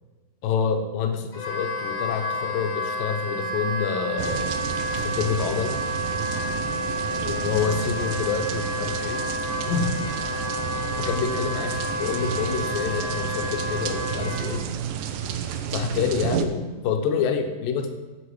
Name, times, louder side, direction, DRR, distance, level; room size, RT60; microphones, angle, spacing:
voice 1, 0.4-4.6 5.0-5.7 7.2-9.2 9.7-9.9 11.0-14.6 15.7-17.9, left 6 dB, 75° left, 6 dB, 2.5 m, -27 dB
Wind instrument woodwind instrument, 1.3-14.5, left 1 dB, 30° left, 1.7 m, -30 dB
sound 1, 4.2-16.5, right 9 dB, 75° right, 2.1 m, -31 dB
8.2 x 6.0 x 8.0 m, 1.2 s
omnidirectional pair, 4.3 m